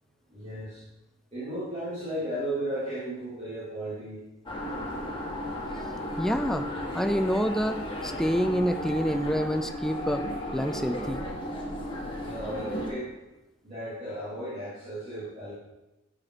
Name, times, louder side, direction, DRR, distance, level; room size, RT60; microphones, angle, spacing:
voice 1, 0.3-0.8 1.3-4.2 12.2-13.1 13.6-15.6, right 1 dB, 30° right, -11 dB, 3.4 m, -35 dB
sound 1, 4.5-12.9, left 1 dB, 25° left, 2.0 m, -34 dB
voice 2, 6.2-6.7 6.9-11.2, equal, ahead, 9 dB, 0.4 m, -27 dB
11.5 x 7.7 x 5.0 m, 1.0 s
head